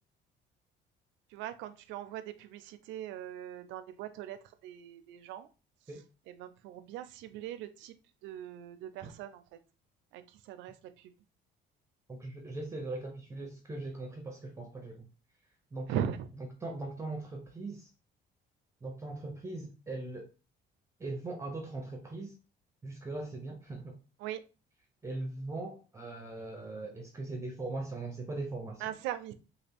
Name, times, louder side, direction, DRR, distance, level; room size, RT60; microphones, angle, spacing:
voice 1, 1.3-4.4 4.6-5.5 6.4-7.9 8.2-9.4 10.1-10.2 10.5-10.7 15.9-16.2 24.2-24.4 28.8-29.3, right 10 dB, 90° right, 0.4 m, -39 dB
voice 2, 12.1-15.1 15.7-16.1 16.4-17.9 18.8-20.3 21.0-22.3 22.8-24.0 25.0-28.8, right 2 dB, 15° right, 0.5 m, -40 dB
3.2 x 2.3 x 3.4 m
cardioid pair, 135°, 19 cm